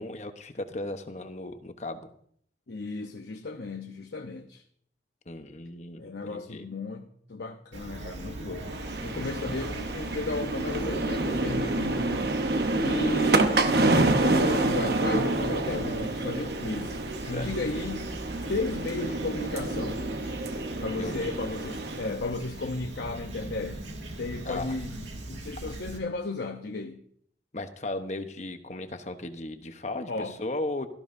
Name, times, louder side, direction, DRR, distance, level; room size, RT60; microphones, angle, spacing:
voice 1, 0.0-2.1 5.3-6.7 17.3-17.5 21.0-21.3 24.4-24.8 27.5-30.9, left 2 dB, 40° left, 8 dB, 1.0 m, -36 dB
voice 2, 2.7-4.6 5.9-8.7 9.0-12.5 12.8-18.1 18.5-20.0 20.8-23.8 24.2-27.0 30.1-30.4, left 3 dB, 70° left, 3 dB, 0.9 m, -34 dB
Fowl / Chirp tweet, 7.7-26.0, right 1 dB, 90° right, 2.2 m, -39 dB
sound 1, 8.6-22.1, right 2 dB, 60° right, 0.9 m, -28 dB
17.5 x 13.5 x 2.7 m, 0.64 s
head